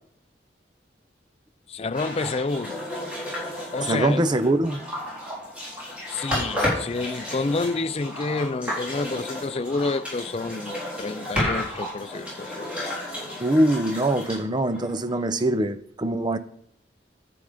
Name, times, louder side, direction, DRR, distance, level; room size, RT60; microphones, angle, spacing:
voice 1, 1.7-2.8 3.7-4.2 6.1-12.8, left 3 dB, 35° left, 0.4 m, -29 dB
sound 1, 1.9-15.5, left 1 dB, 5° right, 3.8 m, -32 dB
voice 2, 3.9-4.8 13.4-16.4, right 1 dB, 25° right, 0.6 m, -23 dB
10.5 x 7.8 x 5.0 m
head